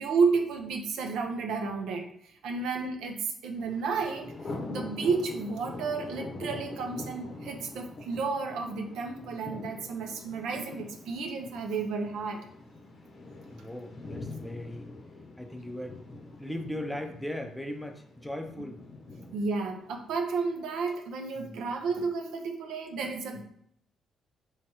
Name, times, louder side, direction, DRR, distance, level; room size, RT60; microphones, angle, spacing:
voice 1, 0.0-2.1 2.4-4.3 4.7-12.5 19.3-23.4, right 4 dB, 85° right, 3 dB, 0.6 m, -31 dB
Thunder, 3.6-20.6, left 2 dB, 50° left, 0.7 m, -44 dB
voice 2, 13.5-14.9 15.4-16.0 16.4-18.8 21.4-21.6 23.3-23.4, left 1 dB, 5° left, 5 dB, 0.5 m, -38 dB
3.4 x 3.1 x 2.9 m, 0.70 s
cardioid pair, 90°, 0 cm